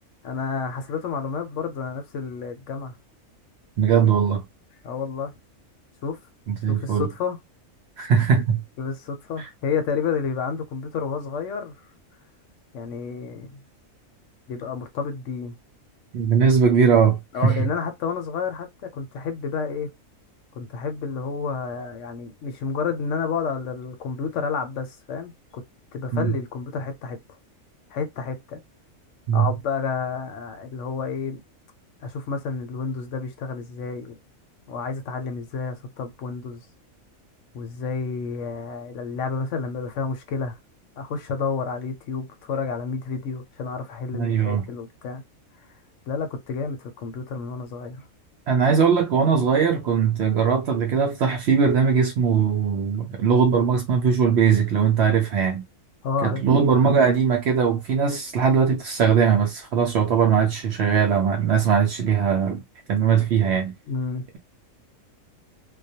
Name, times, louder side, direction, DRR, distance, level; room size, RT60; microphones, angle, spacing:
voice 1, 0.2-2.9 4.8-5.3 6.0-6.2 6.7-7.4 8.8-11.9 12.7-13.6 14.5-15.6 17.3-19.9 20.5-25.6 25.9-27.2 27.9-28.6 29.3-31.4 32.0-34.2 34.7-36.6 37.5-40.6 41.0-45.2 46.1-48.0 56.0-56.5 63.9-64.2, left 5 dB, 70° left, 0.9 m, -30 dB
voice 2, 3.8-4.4 6.5-7.1 8.0-8.6 9.4-9.5 16.1-17.7 26.1-26.4 29.3-29.5 44.1-44.7 48.5-55.6 56.2-62.6 62.9-63.7, right 6 dB, 65° right, 0.7 m, -20 dB
2.3 x 2.2 x 2.7 m
omnidirectional pair, 1.5 m